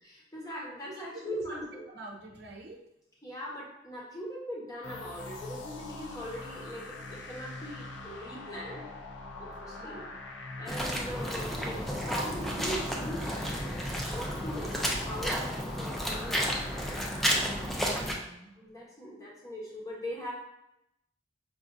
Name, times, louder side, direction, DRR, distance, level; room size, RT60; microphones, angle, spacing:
voice 1, 0.3-1.8 3.2-8.8 9.4-10.0 10.6-16.4 16.8-16.9 18.6-20.3, equal, 20° left, -4 dB, 0.9 m, -40 dB
voice 2, 0.8-1.7 1.9-2.8 9.8-10.1 14.6-14.7 17.8-18.6, right 2 dB, 60° right, 0 dB, 0.6 m, -46 dB
sound 1, 4.8-18.3, left 2 dB, 80° left, 0.5 m, -43 dB
sound 2, 10.7-18.1, equal, ahead, 0.4 m, -32 dB
4.8 x 2.5 x 2.5 m, 0.84 s
head